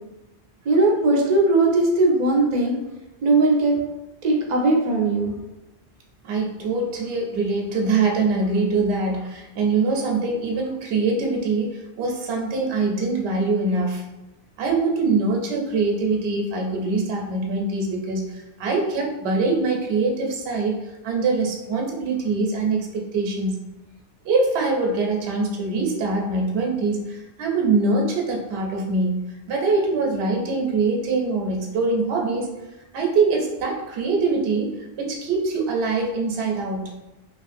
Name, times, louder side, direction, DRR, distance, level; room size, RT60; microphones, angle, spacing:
voice 1, 0.7-2.8 3.2-3.8 4.2-5.3, right 2 dB, 55° right, 0 dB, 0.5 m, -19 dB
voice 2, 6.2-14.0 14.6-20.8 21.0-23.6 24.2-32.5 32.9-36.9, right 3 dB, 75° right, 1 dB, 0.8 m, -23 dB
2.9 x 2.4 x 2.5 m, 1.0 s
omnidirectional pair, 1.1 m